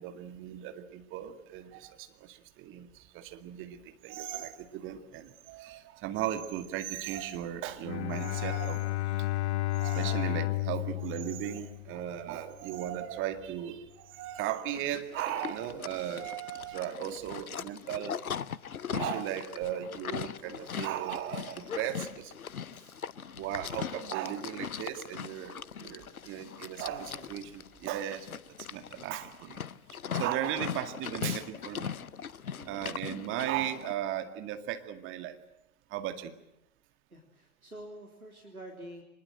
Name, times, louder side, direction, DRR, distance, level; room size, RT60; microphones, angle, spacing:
voice 1, 0.0-8.9 9.8-18.2 18.9-22.3 23.4-28.4 28.7-29.6 30.1-31.9 32.6-35.4 35.9-36.3, right 11 dB, 30° right, 8 dB, 2.2 m, -36 dB
Bowed string instrument, 7.8-12.2, left 17 dB, 50° left, 1.0 m, -32 dB
Livestock farm animals working animals, 14.7-33.9, left 7 dB, 80° left, 0.8 m, -40 dB
voice 2, 26.9-27.3 32.6-32.8 37.1-39.0, right 1 dB, 85° right, 1 dB, 3.6 m, -48 dB
24.5 x 21.5 x 7.8 m, 0.88 s
figure-of-eight pair, 105°, 43 cm